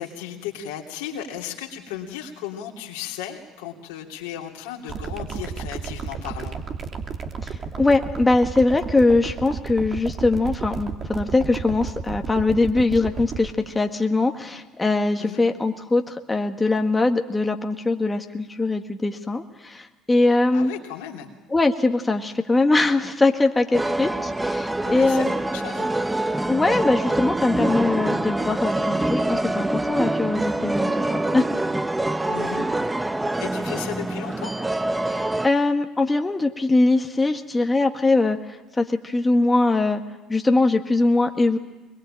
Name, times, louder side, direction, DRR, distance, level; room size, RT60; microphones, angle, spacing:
voice 1, 0.0-6.6 15.2-15.4 20.5-21.3 24.8-25.9 32.3-32.7 33.4-34.5, left 10 dB, 80° left, 0 dB, 3.1 m, -35 dB
sound 1, 4.9-13.5, right 6 dB, 45° right, 2.7 m, -32 dB
voice 2, 7.7-20.7 21.5-25.3 26.5-31.0 31.3-31.4 35.1-38.4 38.8-40.0 40.3-41.6, left 2 dB, 15° left, 4 dB, 1.6 m, -21 dB
sound 2, 23.7-35.5, right 2 dB, 10° right, 0.9 m, -25 dB
23.0 x 22.0 x 9.0 m, 1.1 s
hypercardioid pair, 70°, 0 cm